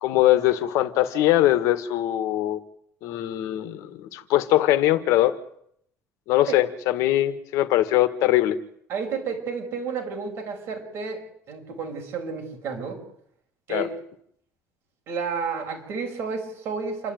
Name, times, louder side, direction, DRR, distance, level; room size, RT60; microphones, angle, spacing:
voice 1, 0.0-2.6 3.0-5.3 6.3-8.6 13.7-13.9, left 14 dB, 70° left, 13 dB, 1.7 m, -21 dB
voice 2, 8.9-11.2 11.5-13.0 13.7-13.9 15.1-17.1, right 5 dB, 45° right, 2 dB, 6.3 m, -31 dB
28.0 x 13.0 x 9.4 m, 0.70 s
cardioid pair, 160°, 6 cm